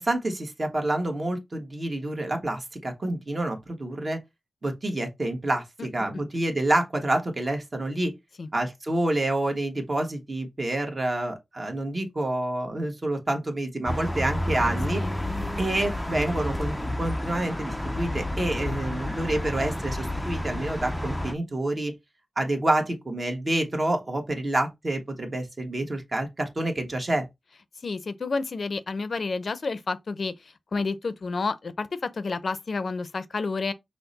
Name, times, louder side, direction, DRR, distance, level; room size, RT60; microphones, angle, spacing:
voice 1, 0.0-4.2 4.6-8.1 8.5-15.0 15.6-21.9 22.4-27.3, right 1 dB, 35° right, 1.2 m, -28 dB
sound 1, 13.8-21.3, left 1 dB, 5° left, 0.5 m, -30 dB
voice 2, 27.8-33.7, left 4 dB, 55° left, 0.6 m, -30 dB
5.8 x 2.1 x 4.0 m
wide cardioid pair, 105°, 0 cm